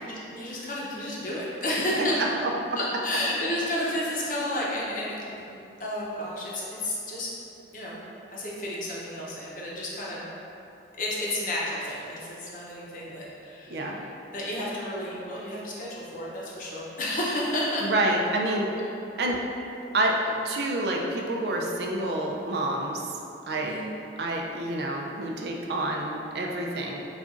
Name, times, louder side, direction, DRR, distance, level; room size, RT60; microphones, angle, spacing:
voice 1, 0.0-2.2 2.8-7.3 7.7-8.0 8.3-10.2 11.0-14.1 14.3-17.9 23.5-23.9, left 1 dB, 45° left, -5 dB, 0.7 m, -31 dB
voice 2, 17.8-18.7 19.2-19.4 19.9-23.1 23.5-23.8 24.2-27.0, right 1 dB, 65° right, 0 dB, 0.4 m, -28 dB
4.0 x 2.5 x 3.6 m, 2.9 s
head